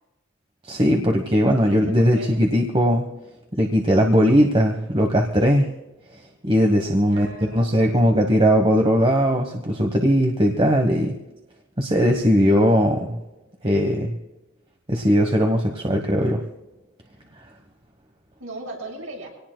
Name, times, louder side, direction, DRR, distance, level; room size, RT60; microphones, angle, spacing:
voice 1, 0.7-3.0 3.6-5.7 6.4-7.3 7.5-11.1 11.8-13.2 13.6-14.2 14.9-16.4, equal, 25° right, 3 dB, 1.2 m, -19 dB
voice 2, 1.7-2.3 7.0-8.3 18.4-19.3, right 1 dB, 85° right, -1 dB, 7.2 m, -37 dB
25.5 x 18.5 x 2.2 m, 0.99 s
head